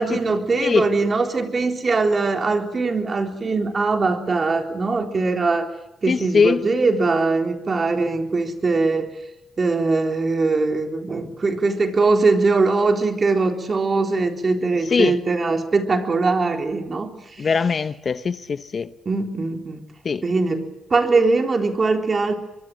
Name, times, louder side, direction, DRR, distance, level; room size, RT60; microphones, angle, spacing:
voice 1, 0.0-5.7 6.0-9.1 9.6-17.8 19.1-19.8 20.2-22.3, right 3 dB, 35° right, 3.8 m, -21 dB
voice 2, 6.1-6.6 14.9-15.1 17.4-18.9 20.0-20.2, left 5 dB, 40° left, 0.9 m, -20 dB
23.5 x 23.5 x 7.7 m
cardioid pair, 90°, 0 cm